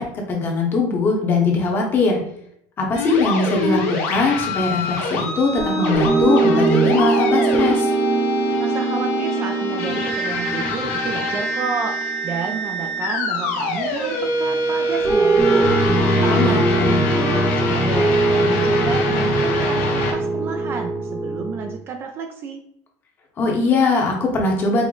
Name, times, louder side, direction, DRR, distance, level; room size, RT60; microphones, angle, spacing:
voice 1, 0.0-2.2 2.8-7.9 16.3-17.1 23.4-24.9, left 3 dB, 25° left, 1 dB, 0.9 m, -21 dB
sound 1, 2.9-20.1, left 2 dB, 80° left, 1.2 m, -25 dB
sound 2, 5.6-13.7 15.0-21.7, right 2 dB, 10° right, 0.8 m, -21 dB
voice 2, 8.6-12.0 12.2-15.8 16.2-22.6, right 5 dB, 30° right, 4 dB, 0.4 m, -30 dB
4.9 x 2.1 x 3.8 m, 0.71 s
cardioid pair, 170°, 8 cm